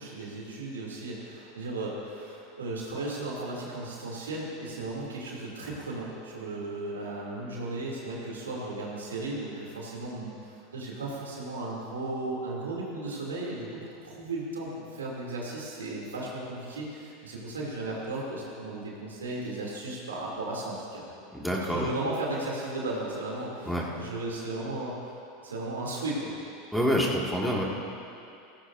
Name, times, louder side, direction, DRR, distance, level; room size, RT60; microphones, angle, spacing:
voice 1, 0.0-21.0 21.7-25.2 25.4-26.3, right 2 dB, 90° right, -4 dB, 2.9 m, -35 dB
voice 2, 21.3-21.9 23.7-23.8 26.7-27.6, equal, ahead, -3 dB, 2.2 m, -27 dB
16.5 x 15.5 x 2.7 m, 2.7 s
hypercardioid pair, 90°, 0 cm